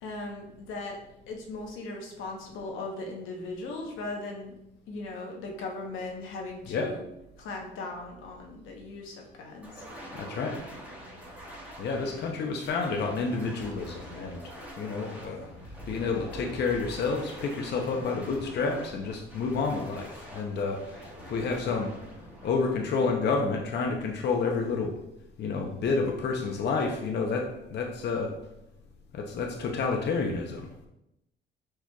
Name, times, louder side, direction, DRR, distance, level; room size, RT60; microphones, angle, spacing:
voice 1, 0.0-1.0 1.3-4.5 4.9-7.0 7.4-9.8, left 2 dB, 90° left, 1 dB, 0.9 m, -38 dB
sound 1, 9.6-23.5, equal, 5° right, 1.2 m, -45 dB
voice 2, 10.1-10.6 11.8-15.5 15.9-21.9 22.4-25.0 25.4-28.3 29.1-30.7, left 4 dB, 60° left, 2 dB, 0.7 m, -29 dB
4.7 x 4.4 x 2.3 m, 0.86 s
cardioid pair, 90°, 20 cm